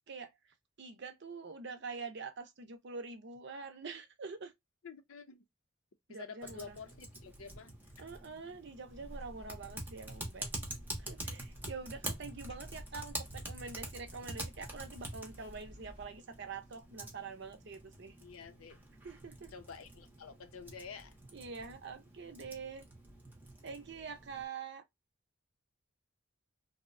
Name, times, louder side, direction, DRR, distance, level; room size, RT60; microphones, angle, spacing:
voice 1, 0.8-4.5 6.1-6.8 8.0-10.5 11.0-18.1 19.0-19.5 21.3-22.8 23.6-24.8, right 4 dB, 55° right, 0.6 m, -45 dB
voice 2, 4.8-5.4 6.1-7.7 8.0-8.1 18.2-18.8 19.5-21.2, left 5 dB, 75° left, 0.6 m, -49 dB
Typing, 6.4-24.4, right 1 dB, 10° right, 0.6 m, -47 dB
sound 1, 8.9-16.0, equal, 30° left, 0.7 m, -53 dB
2.7 x 2.1 x 2.4 m
head